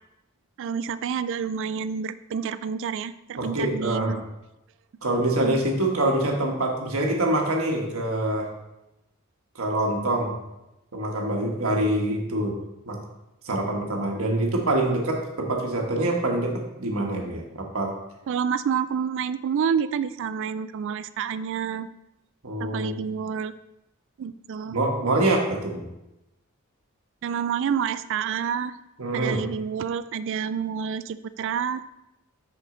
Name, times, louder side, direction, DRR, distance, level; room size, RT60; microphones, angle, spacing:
voice 1, 0.6-4.2 5.4-5.6 18.3-21.9 22.6-23.5 24.2-24.8 27.2-28.7 29.1-31.8, right 7 dB, 65° right, 15 dB, 0.3 m, -28 dB
voice 2, 3.4-4.2 5.0-8.5 9.5-10.3 10.9-12.6 12.8-13.0 13.4-17.9 22.4-22.9 24.7-25.8 29.0-29.4, right 1 dB, 80° right, 1 dB, 1.4 m, -25 dB
6.3 x 5.8 x 3.8 m, 0.93 s
head